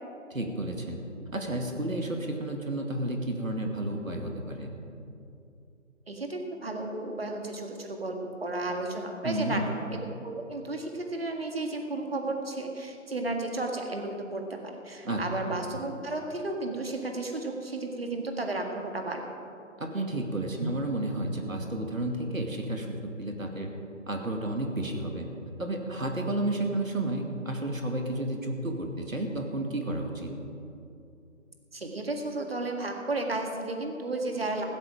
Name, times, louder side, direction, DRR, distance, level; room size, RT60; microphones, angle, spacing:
voice 1, 0.3-1.0 1.3-4.7 9.2-9.6 15.0-15.2 19.8-23.7 24.1-25.3 25.6-30.3, right 1 dB, 85° right, 3 dB, 2.4 m, -31 dB
voice 2, 6.1-9.6 9.9-19.2 31.7-34.6, right 2 dB, 50° right, 3 dB, 1.9 m, -33 dB
15.5 x 12.5 x 4.9 m, 2.7 s
figure-of-eight pair, 165°, 39 cm